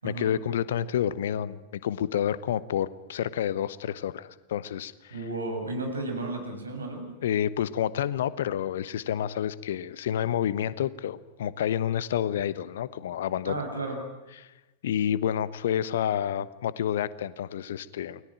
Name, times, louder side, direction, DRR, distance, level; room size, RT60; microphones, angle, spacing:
voice 1, 0.0-5.1 7.2-13.5 14.4-14.5 14.8-18.2, left 10 dB, 60° left, 18 dB, 1.1 m, -29 dB
voice 2, 5.1-7.1 13.5-14.0, right 2 dB, 75° right, 3 dB, 7.2 m, -33 dB
29.5 x 21.5 x 9.1 m, 1.0 s
figure-of-eight pair, 90°, 0 cm